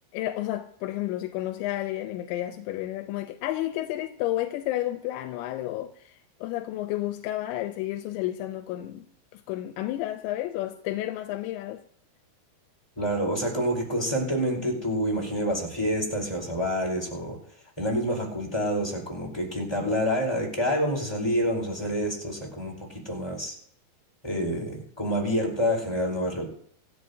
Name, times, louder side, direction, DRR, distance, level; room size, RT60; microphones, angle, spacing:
voice 1, 0.1-9.1 9.3-11.8, left 14 dB, 85° left, 3.0 m, -31 dB
voice 2, 13.0-17.4 17.8-22.8 23.0-23.5 24.2-26.4, equal, 5° left, 3.8 m, -27 dB
26.5 x 13.0 x 2.7 m
omnidirectional pair, 5.1 m